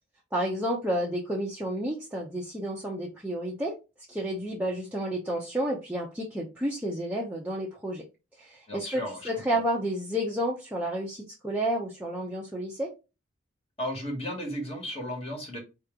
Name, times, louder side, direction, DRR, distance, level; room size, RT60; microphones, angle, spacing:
voice 1, 0.3-3.8 4.1-8.0 8.4-12.9, right 1 dB, 10° right, 0.8 m, -31 dB
voice 2, 8.7-9.6 13.8-15.6, equal, 30° left, 1.6 m, -35 dB
4.5 x 3.1 x 3.7 m
head